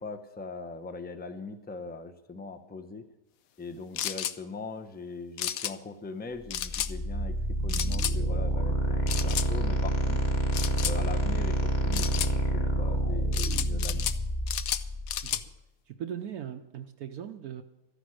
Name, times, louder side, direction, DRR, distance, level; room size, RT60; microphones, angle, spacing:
voice 1, 0.0-3.0 3.6-7.4 7.6-10.2 10.8-12.0 12.5-14.1, left 3 dB, 10° left, 8 dB, 0.6 m, -41 dB
sound 1, 4.0-4.4 5.4-5.7 6.5-6.9 7.7-8.2 9.1-9.5 10.5-11.0 11.9-12.3 13.3-14.2 14.5-15.4, left 11 dB, 70° left, 1.0 m, -32 dB
sound 2, 6.5-15.4, right 1 dB, 30° left, 1.7 m, -28 dB
voice 2, 15.9-17.6, right 9 dB, 70° right, 6 dB, 1.2 m, -39 dB
14.0 x 10.5 x 6.4 m, 0.99 s
omnidirectional pair, 1.7 m